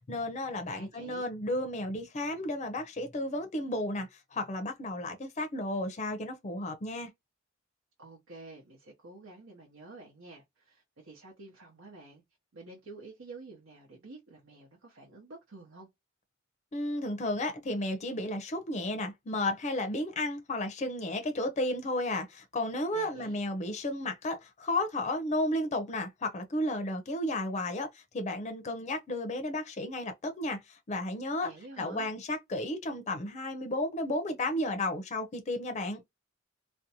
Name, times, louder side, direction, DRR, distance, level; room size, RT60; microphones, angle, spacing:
voice 1, 0.1-7.1 16.7-27.9 28.1-30.6 30.9-31.5 31.8-36.0, left 1 dB, 35° left, 0.5 m, -33 dB
voice 2, 0.7-1.3 8.0-12.2 12.5-15.9 22.9-23.4 31.4-32.1, right 2 dB, 75° right, 0.8 m, -49 dB
2.5 x 2.1 x 2.7 m
head